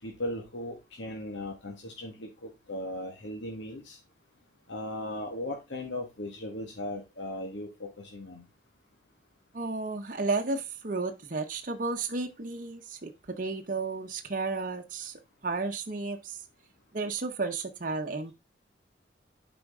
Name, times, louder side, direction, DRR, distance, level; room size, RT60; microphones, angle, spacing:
voice 1, 0.0-4.0 4.7-8.5, left 1 dB, 80° left, 1.7 m, -37 dB
voice 2, 9.5-13.1 13.4-16.4 16.9-18.3, right 3 dB, 45° right, 0.9 m, -33 dB
8.4 x 5.1 x 3.6 m
head